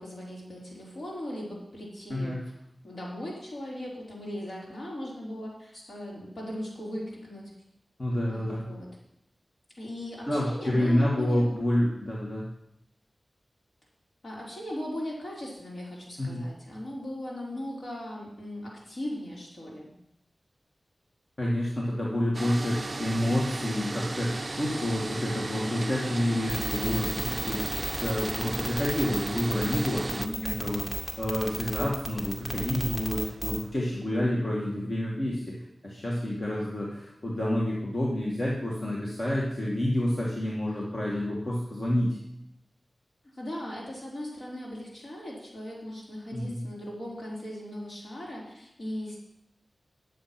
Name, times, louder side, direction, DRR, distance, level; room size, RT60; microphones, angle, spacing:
voice 1, 0.0-2.5 2.8-7.5 8.3-8.9 9.8-11.5 14.2-19.9 30.1-30.6 43.4-49.2, left 1 dB, 65° left, -4 dB, 4.1 m, -38 dB
voice 2, 8.0-8.7 10.3-12.5 16.2-16.4 21.4-27.7 28.0-30.8 31.2-42.2 46.3-46.6, left 1 dB, 45° left, -4 dB, 2.0 m, -28 dB
sound 1, 22.3-30.3, right 2 dB, 35° right, 0.4 m, -35 dB
sound 2, 26.5-33.6, equal, 15° left, 2.1 m, -33 dB
10.0 x 7.5 x 5.9 m, 0.79 s
wide cardioid pair, 65°, 0 cm